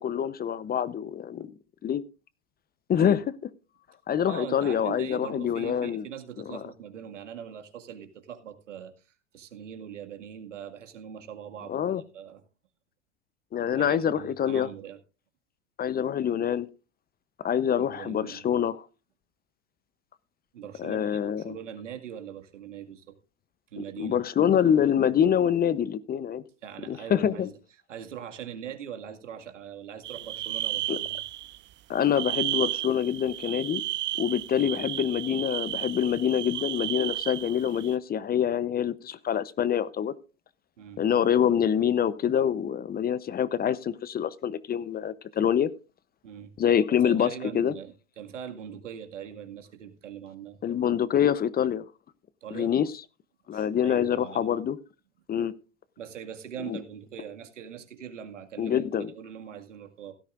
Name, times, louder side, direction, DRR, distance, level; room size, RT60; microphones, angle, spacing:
voice 1, 0.0-1.5 1.8-2.0 2.9-3.2 4.1-6.1 6.5-6.6 11.7-12.0 13.5-14.7 15.8-16.7 17.4-18.9 20.8-21.5 24.0-26.4 26.9-27.5 30.9-31.0 31.9-33.8 34.2-40.1 41.0-45.7 46.6-47.3 47.5-47.7 50.6-51.8 52.5-52.9 53.5-54.8 55.3-55.5 56.7-56.8 58.6-59.1, left 9 dB, 25° left, 17 dB, 0.8 m, -25 dB
voice 2, 4.2-8.9 9.3-11.8 12.1-12.4 13.7-15.0 17.8-18.4 20.5-23.2 23.7-24.2 26.6-27.5 27.9-31.2 34.5-35.1 40.8-41.0 46.2-46.5 47.0-50.6 52.4-52.7 53.5-54.5 56.0-60.1, right 9 dB, 85° right, 6 dB, 2.1 m, -41 dB
sound 1, 30.0-31.6 32.0-37.9, right 15 dB, 30° right, 0.6 m, -33 dB
16.5 x 13.0 x 2.5 m, 0.31 s
hypercardioid pair, 90°, 36 cm